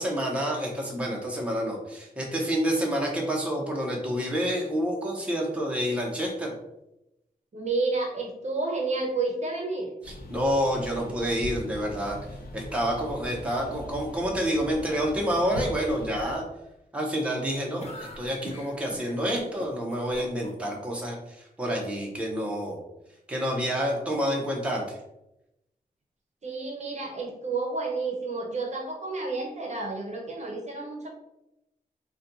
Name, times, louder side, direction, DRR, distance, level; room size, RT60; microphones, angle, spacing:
voice 1, 0.0-6.5 10.3-12.2 12.5-16.4 16.9-22.8 23.3-25.0, equal, 10° right, -2 dB, 0.7 m, -28 dB
voice 2, 7.5-9.9 26.4-31.1, right 3 dB, 50° right, 1 dB, 0.7 m, -30 dB
sound 1, 10.0-16.4, equal, 80° left, 0.7 m, -40 dB
sound 2, 17.8-20.8, left 1 dB, 40° left, 0.7 m, -42 dB
4.1 x 2.2 x 3.9 m, 0.88 s
wide cardioid pair, 175°, 16 cm